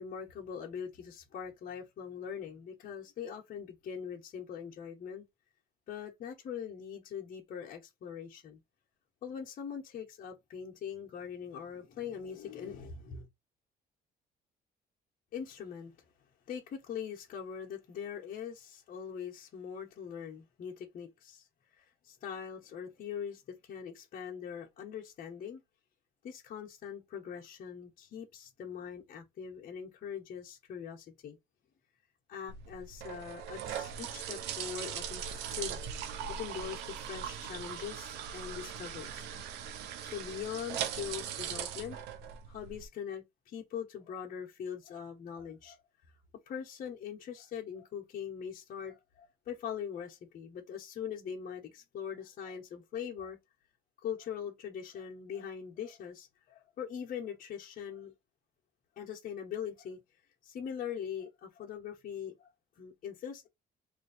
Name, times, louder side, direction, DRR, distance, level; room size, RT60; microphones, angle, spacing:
voice 1, 0.0-5.3 5.9-8.6 9.2-13.3 15.3-15.9 16.5-21.5 21.8-25.6 26.2-31.4 32.3-39.3 40.0-42.2 42.5-45.8 46.5-53.4 54.0-58.1 59.0-60.0 60.4-62.5 62.8-63.5, left 8 dB, 55° left, 1.2 m, -42 dB
sound 1, 32.5-42.9, right 8 dB, 85° right, 0.7 m, -40 dB
3.1 x 2.6 x 4.1 m
cardioid pair, 110°, 17 cm